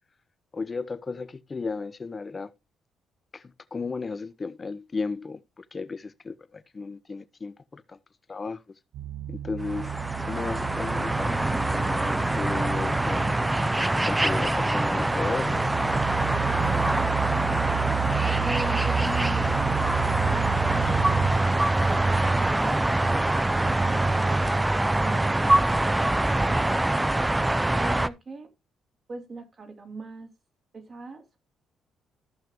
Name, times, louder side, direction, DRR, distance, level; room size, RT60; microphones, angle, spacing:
voice 1, 0.5-2.5 3.3-3.4 3.7-8.0 8.3-8.6 9.3-9.9 10.2-11.3 11.7-13.4 14.0-15.7, left 4 dB, 30° left, 0.9 m, -34 dB
sound 1, 8.9-21.3, right 12 dB, 85° right, 0.7 m, -33 dB
sound 2, 9.6-28.1, right 2 dB, 10° right, 0.5 m, -24 dB
sound 3, 12.8-23.4, left 3 dB, 50° left, 1.5 m, -52 dB
voice 2, 18.3-21.4 21.7-22.8 23.7-24.7 27.8-28.5 29.1-30.3 30.7-31.4, right 3 dB, 40° right, 2.8 m, -40 dB
14.5 x 5.8 x 3.0 m
cardioid pair, 90°, 0 cm